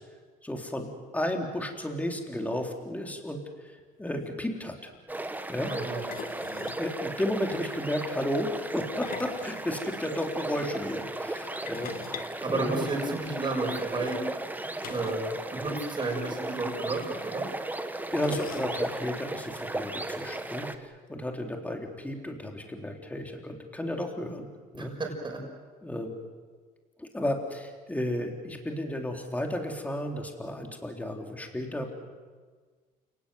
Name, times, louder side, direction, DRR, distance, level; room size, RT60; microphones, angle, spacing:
voice 1, 0.4-3.7 4.0-4.9 5.5-5.7 6.8-12.8 18.1-24.5 24.7-24.9 25.8-26.1 27.0-31.9, left 1 dB, 10° left, 2 dB, 3.7 m, -33 dB
sound 1, 3.8-3.9 4.1-4.3 6.1-6.9 8.8-10.2 11.7-13.3 14.8-15.3 15.6-15.7 16.0-16.1 17.2-17.3 18.2-19.0, left 8 dB, 60° left, 1.7 m, -43 dB
sound 2, 5.1-20.8, right 2 dB, 10° right, 1.5 m, -36 dB
voice 2, 5.6-6.0 12.4-14.2 14.9-17.5 24.7-25.4, right 2 dB, 25° right, 0 dB, 6.3 m, -32 dB
29.5 x 19.0 x 7.8 m, 1.5 s
cardioid pair, 110°, 17 cm